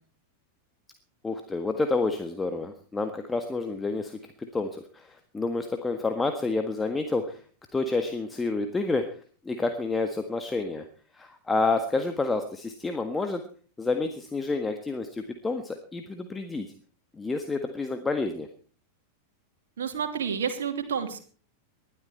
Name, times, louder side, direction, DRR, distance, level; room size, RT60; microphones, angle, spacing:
voice 1, 1.2-7.4 7.7-9.0 9.4-10.8 11.1-13.4 13.8-16.7 17.2-18.5, left 3 dB, 10° left, 6 dB, 1.6 m, -29 dB
voice 2, 19.8-21.2, right 7 dB, 65° right, 4 dB, 2.8 m, -30 dB
20.5 x 12.0 x 4.5 m, 0.42 s
figure-of-eight pair, 90°, 0 cm